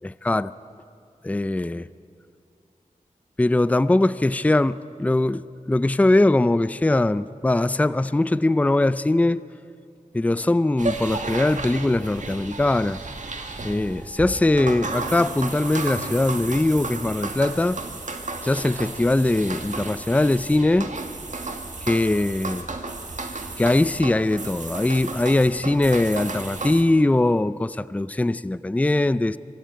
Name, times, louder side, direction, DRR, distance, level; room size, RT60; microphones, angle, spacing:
voice 1, 0.0-0.5 1.2-1.9 3.4-9.4 10.1-13.0 13.6-17.8 18.4-20.9 21.8-22.7 23.6-29.4, left 2 dB, 10° left, 16 dB, 0.4 m, -21 dB
sound 1, 10.8-26.8, right 3 dB, 60° right, 1.8 m, -33 dB
25.0 x 13.0 x 9.2 m, 2.5 s
wide cardioid pair, 85°, 15 cm